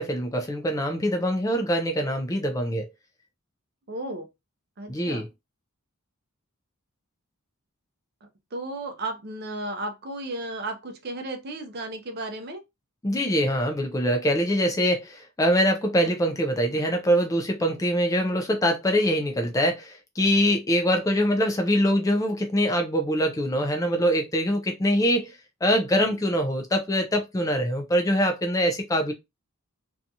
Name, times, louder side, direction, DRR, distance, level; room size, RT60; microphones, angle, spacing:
voice 1, 0.0-2.9 4.9-5.3 13.0-29.1, equal, 15° left, 0.3 m, -24 dB
voice 2, 3.9-4.3 4.8-5.2 8.2-12.6, right 2 dB, 45° right, 0.6 m, -34 dB
2.6 x 2.3 x 2.7 m
head